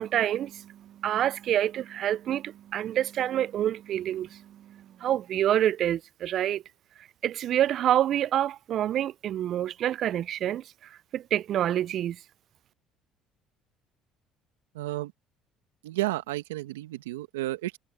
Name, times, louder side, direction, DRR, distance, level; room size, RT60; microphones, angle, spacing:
voice 1, 0.0-4.4 5.0-6.6 7.2-10.6 11.1-12.2, right 11 dB, 60° right, 0.5 m, -27 dB
voice 2, 14.7-15.1 15.8-17.8, right 17 dB, 85° right, 1.6 m, -32 dB
hypercardioid pair, 65°, 0 cm